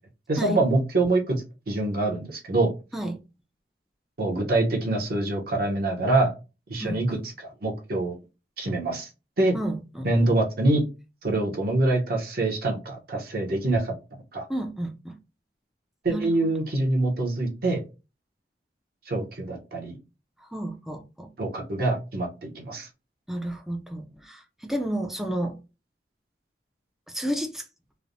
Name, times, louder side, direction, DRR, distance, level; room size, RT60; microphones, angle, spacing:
voice 1, 0.3-1.4 1.7-2.7 4.2-6.3 6.7-8.1 8.6-9.1 9.4-9.6 10.0-10.8 11.2-13.9 14.3-14.4 16.0-17.8 19.1-20.0 21.4-22.9, right 2 dB, 55° right, 0.8 m, -25 dB
voice 2, 6.8-7.2 9.5-10.1 14.5-15.1 16.1-16.3 20.4-21.3 23.3-25.6 27.1-27.6, right 1 dB, ahead, 0.4 m, -31 dB
3.1 x 2.0 x 2.5 m
head